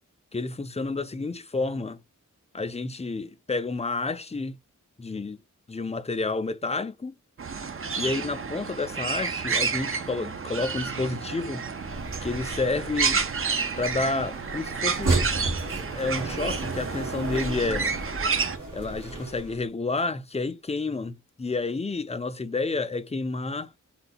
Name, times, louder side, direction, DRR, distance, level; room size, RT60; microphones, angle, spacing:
voice 1, 0.3-2.0 2.5-4.6 5.0-5.4 5.7-7.2 8.0-11.7 12.2-13.2 13.8-15.2 15.7-18.0 18.7-23.7, left 3 dB, 20° left, 0.5 m, -30 dB
sound 1, 7.4-18.6, right 5 dB, 45° right, 0.6 m, -30 dB
sound 2, 11.8-19.6, right 2 dB, 75° right, 1.9 m, -33 dB
3.8 x 2.2 x 4.0 m
wide cardioid pair, 90°, 31 cm